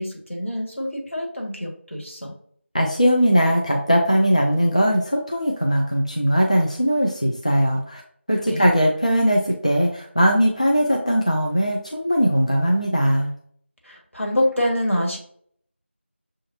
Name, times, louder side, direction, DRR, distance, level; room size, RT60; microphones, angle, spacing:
voice 1, 0.0-2.3 8.5-8.6 13.8-15.2, left 1 dB, 75° left, 0 dB, 1.6 m, -26 dB
voice 2, 2.7-8.0 8.3-13.3, equal, 30° left, 0 dB, 0.4 m, -20 dB
6.7 x 2.5 x 2.7 m, 0.62 s
figure-of-eight pair, 175°, 7 cm